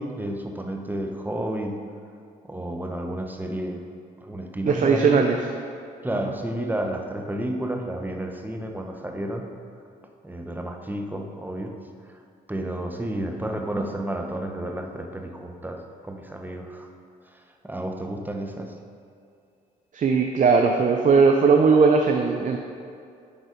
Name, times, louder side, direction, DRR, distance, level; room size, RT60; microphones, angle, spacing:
voice 1, 0.0-1.8 2.4-3.8 4.2-5.3 6.0-9.5 10.2-11.7 12.1-12.2 12.5-16.9 17.3-18.8, right 1 dB, 10° right, 3 dB, 1.0 m, -31 dB
voice 2, 4.7-5.4 19.9-22.6, right 5 dB, 45° right, 3 dB, 0.6 m, -18 dB
10.5 x 4.0 x 5.1 m, 2.4 s
supercardioid pair, 60°, 18 cm